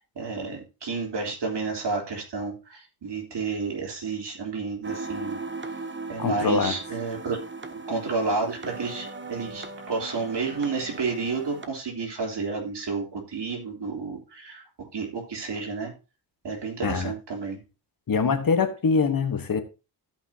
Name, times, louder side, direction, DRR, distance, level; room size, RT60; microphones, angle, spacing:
voice 1, 0.0-5.4 6.1-7.4 7.9-15.9 16.4-17.6, right 4 dB, 75° right, 3.4 m, -31 dB
sound 1, 4.8-11.7, right 3 dB, 25° right, 0.9 m, -38 dB
voice 2, 6.2-6.7 16.8-17.1 18.1-19.6, left 5 dB, 50° left, 1.3 m, -23 dB
16.0 x 5.5 x 2.8 m
cardioid pair, 85°, 42 cm